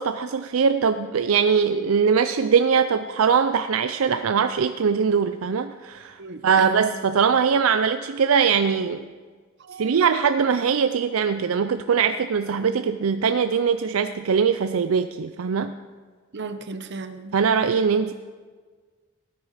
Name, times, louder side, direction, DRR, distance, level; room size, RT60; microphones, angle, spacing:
voice 1, 0.0-9.1 9.8-15.7 17.3-18.1, right 6 dB, 80° right, 10 dB, 0.4 m, -21 dB
voice 2, 6.2-6.8 9.6-9.9 16.3-17.3, right 3 dB, 55° right, 9 dB, 1.0 m, -35 dB
17.5 x 9.5 x 4.9 m, 1.5 s
head